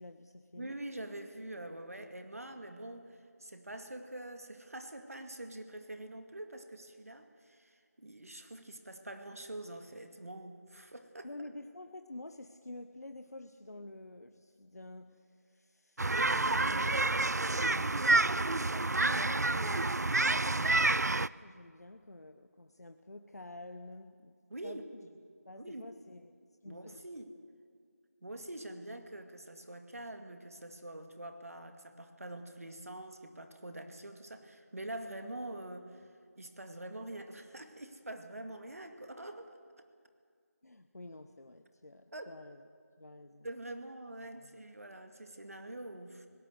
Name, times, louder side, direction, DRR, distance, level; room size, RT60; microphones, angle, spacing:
voice 1, 0.0-0.8 11.2-24.4 24.6-24.8 25.4-26.3 26.6-27.0 40.6-42.6 43.0-43.5 44.4-44.6, left 2 dB, 70° left, 7 dB, 1.0 m, -49 dB
voice 2, 0.6-11.3 24.5-25.1 25.5-25.9 26.7-27.3 28.2-36.1 36.4-39.6 42.1-42.3 43.4-46.3, right 1 dB, 60° right, 6 dB, 2.1 m, -45 dB
sound 1, 16.0-21.3, right 2 dB, 80° right, 0.5 m, -28 dB
22.0 x 17.5 x 8.0 m, 2.1 s
figure-of-eight pair, 175°, 9 cm